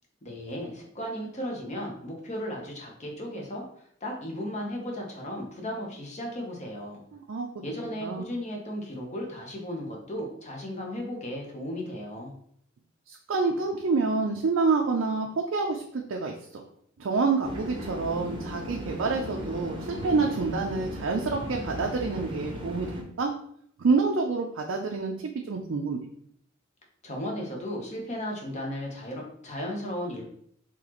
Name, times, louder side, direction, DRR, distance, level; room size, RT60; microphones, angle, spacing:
voice 1, 0.2-7.0 7.6-12.3 27.0-30.3, equal, 35° left, 0 dB, 0.8 m, -35 dB
voice 2, 7.1-7.5 8.0-8.2 13.1-16.3 17.0-22.9 23.2-23.3 23.8-26.0, right 4 dB, 65° right, 0 dB, 0.4 m, -27 dB
sound 1, 17.4-23.0, equal, 25° right, 0.7 m, -37 dB
4.0 x 2.9 x 2.9 m, 0.66 s
head